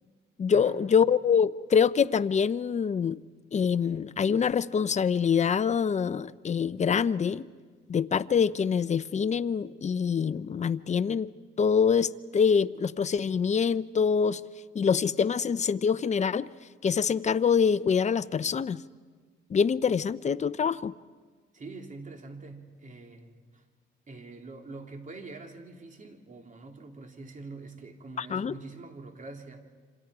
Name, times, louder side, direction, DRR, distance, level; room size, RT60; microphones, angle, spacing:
voice 1, 0.4-3.2 3.5-7.5 7.9-11.3 11.6-14.4 14.7-16.5 16.8-18.8 19.5-20.9 28.2-28.5, left 6 dB, 35° left, 15 dB, 0.7 m, -25 dB
voice 2, 21.5-23.6 24.1-29.6, right 3 dB, 40° right, 4 dB, 2.9 m, -45 dB
27.5 x 26.5 x 4.9 m, 1.5 s
cardioid pair, 90°, 20 cm